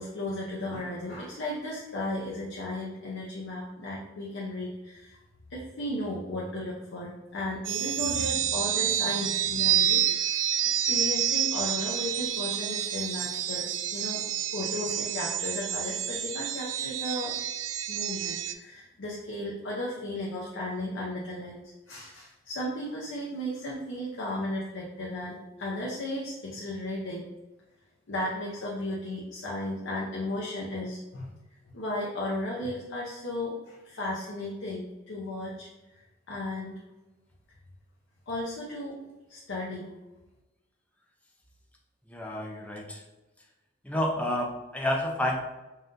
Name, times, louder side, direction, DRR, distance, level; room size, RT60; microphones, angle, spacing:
voice 1, 0.0-5.2 5.5-10.4 10.9-14.2 14.5-17.3 17.9-21.6 21.9-27.3 28.1-31.3 31.7-35.7 36.3-36.8 38.3-39.0 39.3-39.9, left 1 dB, 65° left, -4 dB, 0.7 m, -35 dB
sound 1, 7.6-18.5, right 10 dB, 65° right, 0.3 m, -29 dB
voice 2, 42.1-43.0 43.8-45.4, left 1 dB, 5° left, 0 dB, 0.5 m, -30 dB
5.5 x 2.6 x 2.6 m, 1.1 s
head